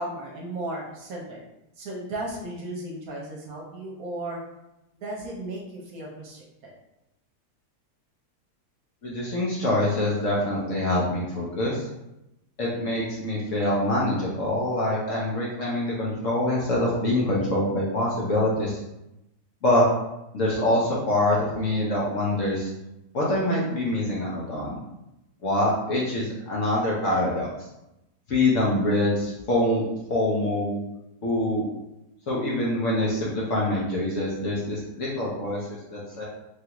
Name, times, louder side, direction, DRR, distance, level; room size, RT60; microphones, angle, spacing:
voice 1, 0.0-1.4 1.8-4.4 4.9-6.7, right 1 dB, 65° right, -2 dB, 1.0 m, -35 dB
voice 2, 9.0-11.9 12.6-18.8 19.6-19.8 20.3-22.7 23.1-24.8 25.4-27.5 28.3-29.8 30.1-30.8 31.2-31.7 32.3-36.2, left 1 dB, 60° left, -5 dB, 0.9 m, -25 dB
3.1 x 2.4 x 2.8 m, 0.92 s
omnidirectional pair, 1.8 m